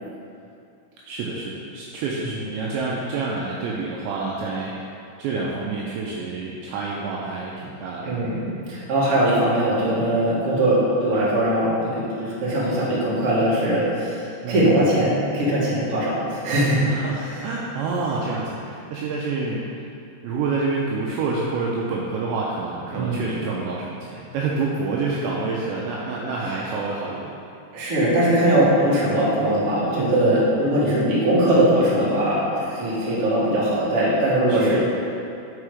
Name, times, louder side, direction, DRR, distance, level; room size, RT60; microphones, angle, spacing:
voice 1, 1.1-8.2 14.4-14.9 16.8-19.9 20.2-27.4 30.0-30.4 34.5-34.8, right 3 dB, 90° right, -4 dB, 2.5 m, -28 dB
voice 2, 8.0-16.8 22.9-23.2 27.7-34.8, right 1 dB, 70° right, -8 dB, 1.3 m, -21 dB
6.2 x 5.5 x 4.8 m, 2.6 s
omnidirectional pair, 5.6 m